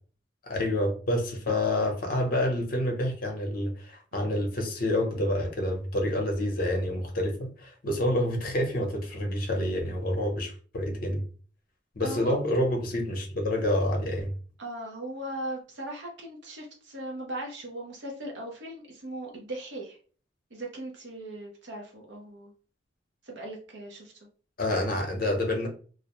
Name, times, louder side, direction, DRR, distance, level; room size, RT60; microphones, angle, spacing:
voice 1, 0.4-11.2 12.0-14.3 24.6-25.7, left 1 dB, 50° left, 0.7 m, -28 dB
voice 2, 12.0-12.3 14.6-20.0 20.5-22.5 23.2-24.1, right 1 dB, 65° right, 0.7 m, -38 dB
2.4 x 2.1 x 2.9 m
head